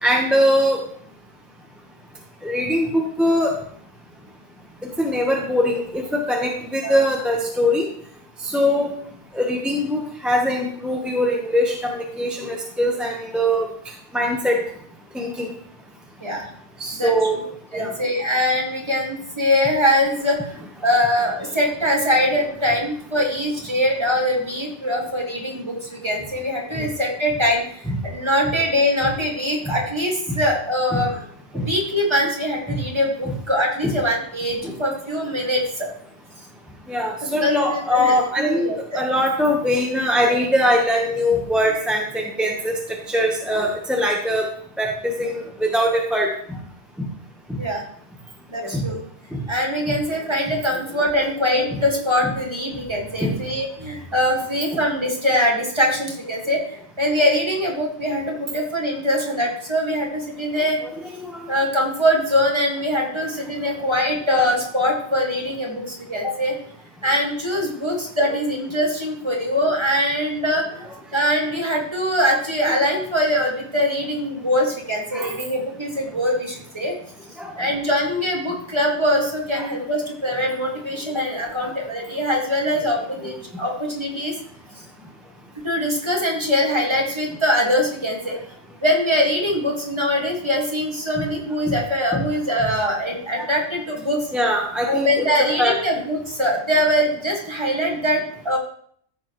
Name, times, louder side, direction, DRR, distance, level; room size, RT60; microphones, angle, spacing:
voice 1, 0.0-0.8 2.4-3.5 5.0-7.9 8.4-8.9 9.3-13.7 14.1-14.6 15.1-15.5 16.8-17.4 17.7-17.9 26.8-26.9 27.9-28.0 29.7-29.8 30.3-30.4 30.9-31.0 31.5-31.7 32.7-32.8 33.8-33.9 34.6-34.8 36.9-42.8 43.1-44.5 44.8-46.3 48.7-48.9 49.3-49.4 51.7-51.8 53.2-53.3 54.7-54.8 61.0-61.3 75.1-75.3 77.4-77.7 79.6-79.7 83.2-83.3 83.6-83.7 91.2-91.3 91.7-91.8 92.1-92.2 93.4-93.5 94.3-95.3 95.6-95.8, equal, ahead, 0 dB, 0.9 m, -22 dB
voice 2, 17.7-31.2 31.5-35.9 37.2-39.1 47.6-47.8 48.5-49.0 49.5-60.8 61.5-66.6 67.0-76.9 77.6-84.3 85.6-88.4 88.8-94.2 94.9-98.6, equal, 25° right, -1 dB, 1.9 m, -22 dB
14.0 x 6.9 x 3.1 m, 0.62 s
omnidirectional pair, 1.2 m